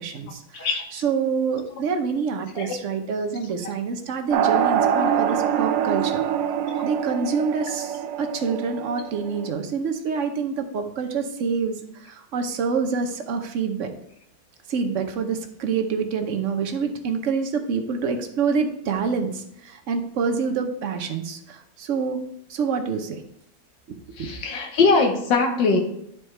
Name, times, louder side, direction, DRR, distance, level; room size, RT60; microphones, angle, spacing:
voice 1, 0.0-6.2 6.8-13.9 14.7-22.2 22.5-23.2 23.9-24.3, right 5 dB, 60° right, 5 dB, 0.8 m, -27 dB
sound 1, 4.3-9.5, right 9 dB, 75° right, 1.2 m, -24 dB
voice 2, 24.2-25.8, left 4 dB, 70° left, 3 dB, 1.6 m, -21 dB
10.0 x 4.7 x 3.3 m, 0.75 s
omnidirectional pair, 2.1 m